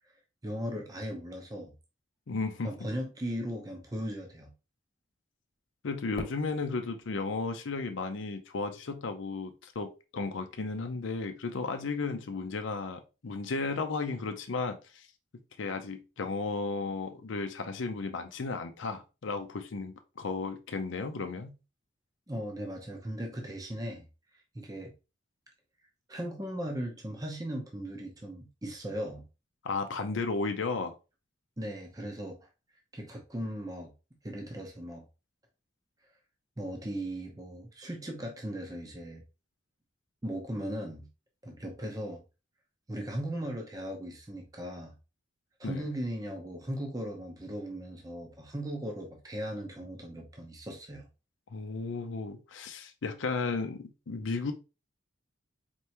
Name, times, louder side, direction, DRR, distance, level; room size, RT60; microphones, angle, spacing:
voice 1, 0.4-1.7 2.6-4.5 22.3-24.1 24.5-24.9 26.1-29.3 31.6-32.4 32.9-33.9 34.2-35.0 36.6-39.2 40.2-41.1 41.4-42.2 42.9-44.9 45.6-51.1, equal, 20° right, 0.7 m, -37 dB
voice 2, 2.3-2.7 5.8-15.1 15.6-21.5 29.6-31.0 45.6-45.8 51.5-54.5, left 4 dB, 75° left, 0.5 m, -34 dB
Fireworks, 6.1-8.5, left 1 dB, 45° left, 1.3 m, -46 dB
4.4 x 3.3 x 2.9 m
head